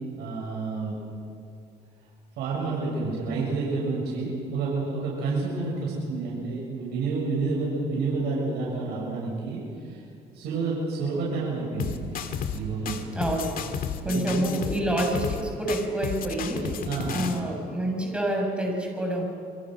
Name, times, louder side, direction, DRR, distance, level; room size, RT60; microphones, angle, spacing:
voice 1, 0.2-1.0 2.4-10.0 10.3-12.2 12.5-13.2 14.0-14.6 16.6-17.3, right 3 dB, 80° right, -4 dB, 7.4 m, -29 dB
sound 1, 11.8-12.6 12.9-15.4 15.7-17.4, left 7 dB, 55° left, 2.2 m, -33 dB
voice 2, 13.1-13.7 14.0-16.7 17.1-19.2, right 1 dB, 5° right, 0 dB, 6.9 m, -27 dB
28.0 x 24.0 x 6.6 m, 2.4 s
cardioid pair, 110°, 17 cm